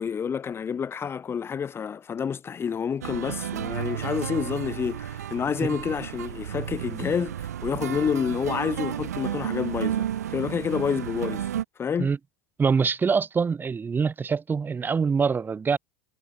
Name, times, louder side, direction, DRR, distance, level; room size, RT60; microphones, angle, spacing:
voice 1, 0.0-11.5 11.8-12.1, left 7 dB, 30° left, 2.2 m, -29 dB
sound 1, 3.0-11.6, right 10 dB, 90° right, 6.3 m, -32 dB
voice 2, 12.6-15.8, right 5 dB, 25° right, 3.2 m, -24 dB
hypercardioid pair, 90°, 8 cm